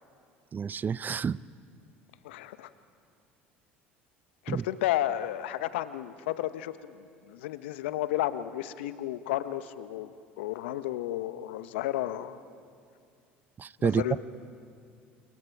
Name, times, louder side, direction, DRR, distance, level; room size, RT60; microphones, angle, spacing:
voice 1, 0.5-1.4 4.5-4.6 13.6-14.2, right 6 dB, 30° right, 20 dB, 0.5 m, -29 dB
voice 2, 2.2-2.7 4.4-12.4 13.8-14.2, left 13 dB, 75° left, 13 dB, 0.9 m, -32 dB
29.5 x 27.5 x 4.8 m, 2.3 s
hypercardioid pair, 70°, 6 cm